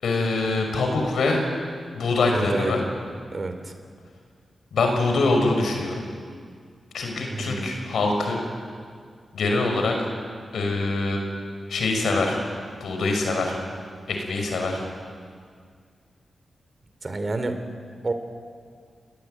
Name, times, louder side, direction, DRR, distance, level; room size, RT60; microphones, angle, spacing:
voice 1, 0.0-1.4 1.9-2.8 4.7-6.0 6.9-8.4 9.3-10.1 10.5-11.2 11.7-12.4 12.8-13.5 14.1-14.8, left 3 dB, 85° left, 2 dB, 5.9 m, -24 dB
voice 2, 2.3-2.8 3.3-3.7 7.3-7.7 17.0-17.6 18.0-18.1, right 3 dB, 40° right, 8 dB, 3.4 m, -28 dB
29.5 x 19.5 x 9.3 m, 2.1 s
cardioid pair, 75°, 0 cm